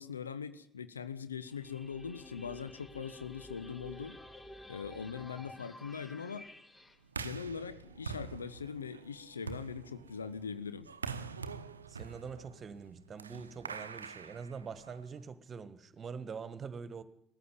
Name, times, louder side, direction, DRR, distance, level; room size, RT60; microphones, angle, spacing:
voice 1, 0.0-4.2 4.7-6.5 7.2-10.9, left 6 dB, 85° left, 0.9 m, -41 dB
sound 1, 1.4-7.0, left 1 dB, 20° left, 2.4 m, -51 dB
sound 2, 7.1-15.2, right 5 dB, 85° right, 0.8 m, -45 dB
sound 3, 7.7-10.7, right 10 dB, 70° right, 1.0 m, -62 dB
voice 2, 11.9-17.0, right 5 dB, 35° right, 1.6 m, -44 dB
19.0 x 14.5 x 9.9 m
figure-of-eight pair, 55°, 0 cm